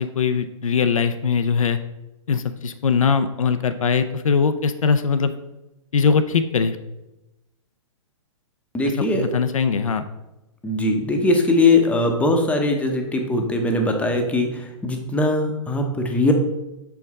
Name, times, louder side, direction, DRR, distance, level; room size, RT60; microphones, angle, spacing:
voice 1, 0.0-1.8 2.3-5.3 5.9-6.8 9.1-10.0, left 6 dB, 85° left, 10 dB, 0.5 m, -21 dB
voice 2, 8.7-9.3 10.6-16.3, left 2 dB, 10° left, 3 dB, 0.7 m, -20 dB
6.4 x 4.6 x 3.5 m, 0.97 s
hypercardioid pair, 125°, 17 cm